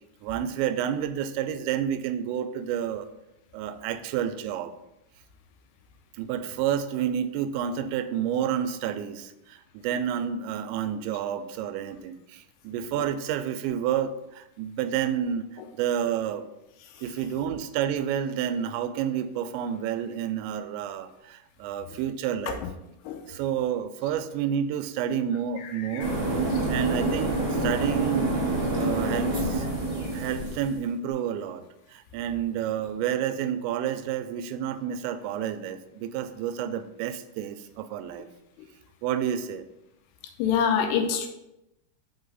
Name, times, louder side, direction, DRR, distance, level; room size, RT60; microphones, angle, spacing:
voice 1, 0.2-3.1 3.5-4.7 6.2-15.5 15.8-16.5 17.0-22.6 23.3-26.1 26.7-28.3 28.7-29.7 30.1-38.3 39.0-39.7, right 9 dB, 85° right, 11 dB, 2.8 m, -30 dB
voice 2, 25.6-26.1 26.5-26.6 40.4-41.3, left 7 dB, 85° left, 5 dB, 2.5 m, -27 dB
sound 1, 26.0-30.8, right 2 dB, 70° right, 0.7 m, -27 dB
5.8 x 5.5 x 4.0 m, 0.89 s
omnidirectional pair, 5.1 m